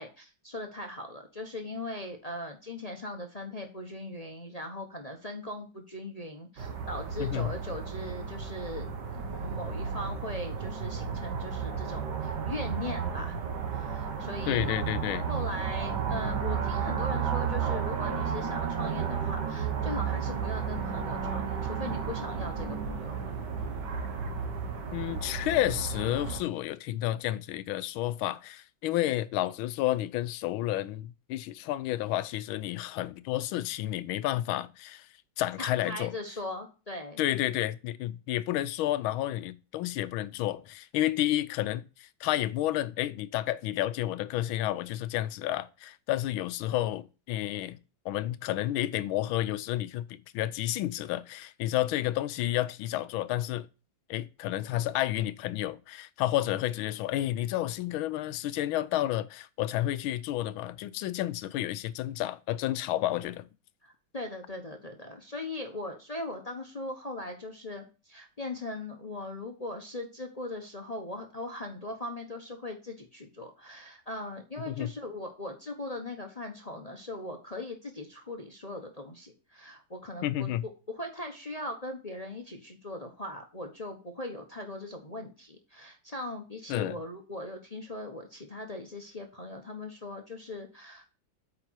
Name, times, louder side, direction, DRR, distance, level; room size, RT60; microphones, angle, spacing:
voice 1, 0.0-8.9 9.3-13.4 13.7-14.8 15.3-23.3 35.6-37.2 63.8-80.5 80.9-91.1, left 1 dB, 30° left, 0.8 m, -39 dB
sound 1, 6.6-26.4, right 6 dB, 60° right, 1.7 m, -33 dB
voice 2, 7.2-7.5 14.5-15.2 24.9-35.1 35.4-36.1 37.2-47.8 48.0-53.7 54.1-63.5 74.6-74.9 80.2-80.6 86.7-87.0, left 14 dB, 90° left, 1.4 m, -31 dB
8.5 x 4.9 x 4.6 m
omnidirectional pair, 2.2 m